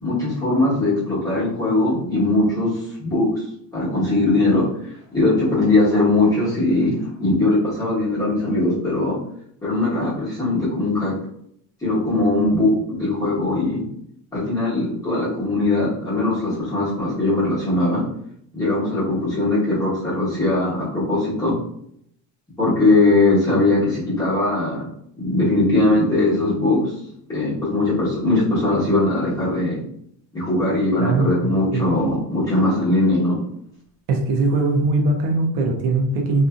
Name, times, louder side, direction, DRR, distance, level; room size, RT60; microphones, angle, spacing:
voice 1, 0.0-3.4 3.7-4.6 5.1-9.2 9.6-11.1 11.8-13.8 14.3-18.0 18.5-21.5 22.6-24.9 25.2-26.9 27.3-29.8 30.3-33.4, left 2 dB, 10° left, -10 dB, 1.2 m, -20 dB
voice 2, 31.0-31.8 34.1-36.5, right 2 dB, 80° right, 1 dB, 0.8 m, -21 dB
2.7 x 2.6 x 2.4 m, 0.71 s
cardioid pair, 175°, 39 cm